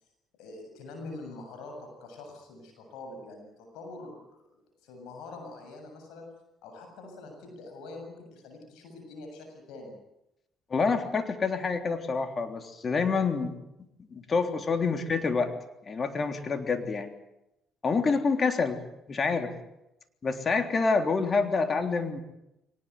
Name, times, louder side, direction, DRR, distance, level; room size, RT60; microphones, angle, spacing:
voice 1, 0.4-6.3 6.6-10.0, left 2 dB, 75° left, 3 dB, 7.5 m, -44 dB
voice 2, 10.7-13.6 14.1-15.5 15.9-17.1 17.8-18.8 19.1-19.5 20.2-22.2, left 4 dB, 40° left, 7 dB, 3.5 m, -27 dB
23.5 x 19.5 x 9.5 m, 0.87 s
supercardioid pair, 60°, 0 cm